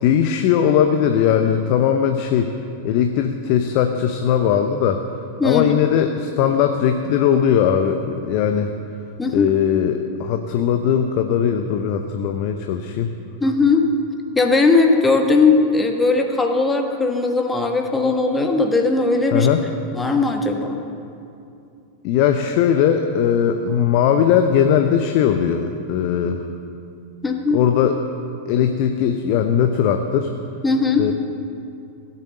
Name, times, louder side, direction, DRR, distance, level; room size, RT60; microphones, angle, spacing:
voice 1, 0.0-2.5 2.8-5.0 5.4-8.7 9.3-13.1 19.3-19.7 22.0-26.4 27.5-28.0 28.5-30.3 31.0-31.1, left 8 dB, 45° left, 7 dB, 0.7 m, -19 dB
voice 2, 5.4-5.7 9.2-9.5 13.4-13.9 14.3-19.5 19.9-20.8 27.2-27.6 30.6-31.1, left 3 dB, 10° left, 4 dB, 1.3 m, -18 dB
16.5 x 8.3 x 6.5 m, 2.5 s
figure-of-eight pair, 90°, 0 cm